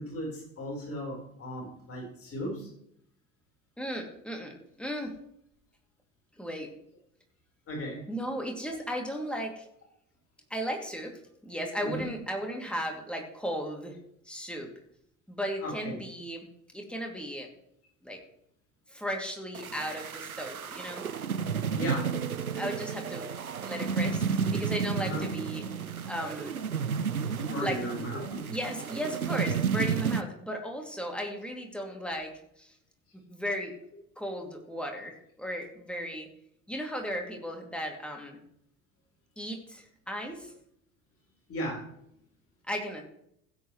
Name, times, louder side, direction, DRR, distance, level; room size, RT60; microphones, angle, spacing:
voice 1, 0.0-2.7 7.7-8.1 11.8-12.1 15.6-16.0 21.8-22.2 25.0-25.3 27.3-28.5 41.5-41.9, equal, 30° left, -2 dB, 4.6 m, -36 dB
voice 2, 3.8-5.2 6.4-6.7 8.1-9.7 10.5-14.0 14.2-14.7 15.3-16.5 16.7-17.5 18.0-18.2 18.9-21.1 22.5-23.3 23.6-25.6 26.1-26.6 27.6-27.8 28.5-32.3 32.6-32.7 33.1-33.8 34.2-36.3 36.7-38.4 39.4-40.5 42.7-43.1, equal, ahead, 1 dB, 2.7 m, -35 dB
sound 1, 19.5-30.2, right 6 dB, 90° right, 0.5 m, -32 dB
16.0 x 8.2 x 3.2 m, 0.71 s
figure-of-eight pair, 65°, 42 cm